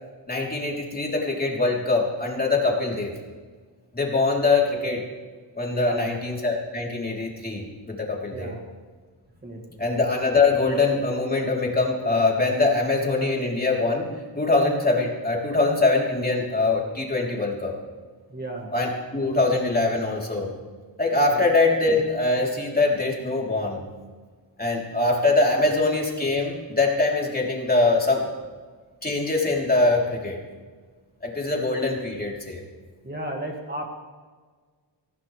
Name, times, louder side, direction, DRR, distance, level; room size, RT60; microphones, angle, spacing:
voice 1, 0.3-3.1 3.9-5.0 5.6-8.5 9.8-14.1 14.4-17.7 18.7-20.5 21.0-23.8 24.6-28.3 29.0-30.4 31.2-32.6, left 3 dB, 20° left, -2 dB, 3.4 m, -23 dB
voice 2, 5.7-6.1 8.3-8.7 9.4-9.8 18.3-18.7 21.3-21.5 25.6-25.7 33.0-33.8, right 1 dB, 20° right, 0 dB, 2.0 m, -34 dB
24.0 x 16.5 x 3.3 m, 1.5 s
wide cardioid pair, 105°, 45 cm